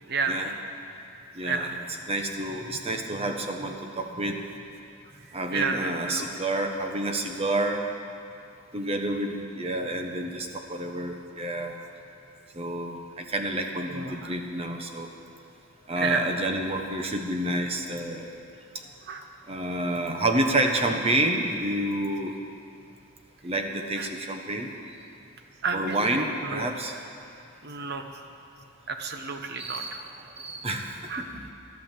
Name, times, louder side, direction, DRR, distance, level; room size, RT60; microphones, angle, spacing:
voice 1, 0.1-0.4 1.4-1.8 5.5-6.3 13.9-14.3 16.0-16.3 19.1-19.2 24.0-24.1 25.6-26.7 27.6-28.2 28.9-30.0 31.1-31.2, right 4 dB, 50° right, 5 dB, 1.0 m, -31 dB
voice 2, 1.3-1.7 2.1-4.4 5.3-7.8 8.7-11.8 12.5-15.1 15.9-18.4 19.5-22.4 23.4-24.7 25.7-26.9 29.6-30.0 30.4-31.5, right 1 dB, 30° right, 3 dB, 1.2 m, -29 dB
13.0 x 12.0 x 7.5 m, 2.5 s
head